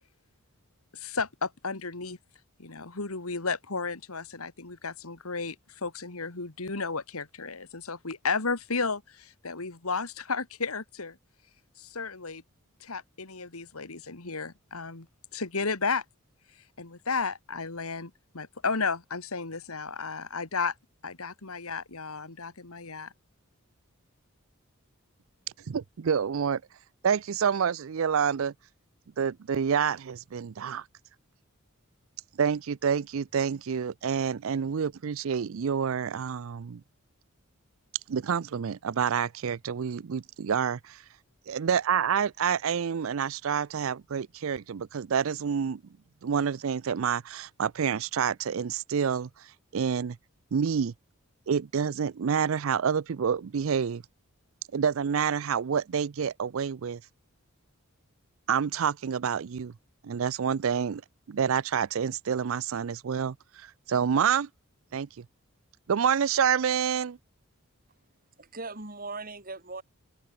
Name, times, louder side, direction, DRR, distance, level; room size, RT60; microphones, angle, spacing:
voice 1, 0.9-2.2 2.6-11.2 11.8-12.4 12.8-15.1 15.3-16.0 16.8-20.7 21.0-23.1, left 4 dB, 85° left, 2.2 m, -33 dB
voice 2, 25.7-26.6 27.0-28.5 29.2-30.8 32.4-36.8 38.1-41.0 41.5-45.8 46.2-49.3 49.7-50.2 50.5-50.9 51.5-54.0 54.7-57.0 58.5-59.7 60.0-61.0 61.3-63.4 63.9-64.5 64.9-65.2 65.9-67.2, right 7 dB, 70° right, 0.4 m, -28 dB
voice 3, 68.4-69.8, right 3 dB, 40° right, 4.5 m, -39 dB
open air
head